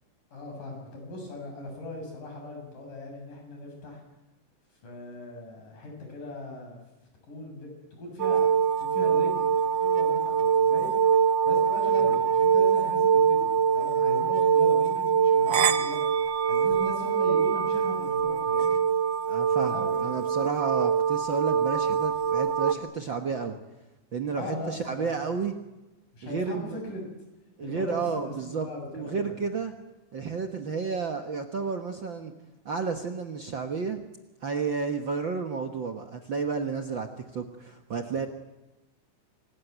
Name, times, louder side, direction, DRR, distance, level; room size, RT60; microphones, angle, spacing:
voice 1, 0.3-4.0 4.8-6.8 7.2-7.7 8.0-9.5 9.8-11.0 11.4-18.8 19.6-20.2 24.3-25.1 26.1-27.0 27.6-29.3, left 2 dB, 80° left, 2 dB, 8.5 m, -39 dB
sound 1, 8.2-22.7, right 7 dB, 75° right, 1.0 m, -24 dB
voice 2, 19.3-23.6 24.1-25.6 26.2-26.8 27.6-29.7 30.1-32.3 32.6-34.0 34.4-38.3, right 5 dB, 55° right, 5 dB, 1.4 m, -31 dB
27.0 x 19.0 x 9.3 m, 1.0 s
omnidirectional pair, 3.7 m